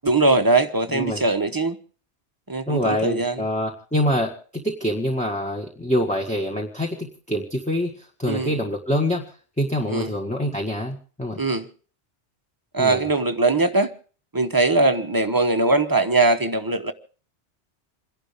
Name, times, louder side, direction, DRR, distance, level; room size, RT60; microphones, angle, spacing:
voice 1, 0.0-1.8 2.5-3.4 8.3-8.6 9.9-10.1 11.4-11.7 12.7-13.9 14.3-16.9, right 3 dB, 20° right, 1.0 m, -21 dB
voice 2, 0.9-1.2 2.7-9.2 9.6-11.4 12.8-13.0, left 1 dB, 5° left, 1.7 m, -25 dB
28.0 x 11.5 x 3.5 m
omnidirectional pair, 1.1 m